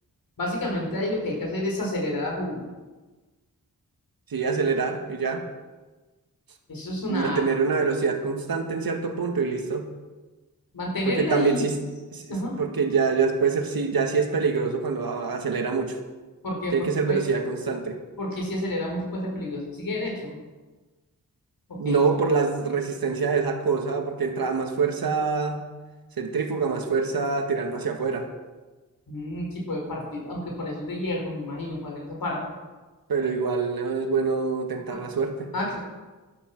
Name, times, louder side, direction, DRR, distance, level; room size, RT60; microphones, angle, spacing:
voice 1, 0.4-2.6 6.7-7.4 10.7-11.7 12.3-12.6 16.4-17.2 18.2-20.3 21.7-22.0 29.1-32.4 34.9-35.0 35.5-35.8, left 1 dB, 75° left, -1 dB, 4.8 m, -30 dB
voice 2, 4.3-5.4 7.1-9.8 11.1-11.7 12.1-12.2 12.6-16.0 16.7-18.0 21.8-25.6 26.2-28.3 33.1-35.5, right 5 dB, 85° right, 4 dB, 1.9 m, -25 dB
13.0 x 12.5 x 6.1 m, 1.2 s
wide cardioid pair, 140°, 35 cm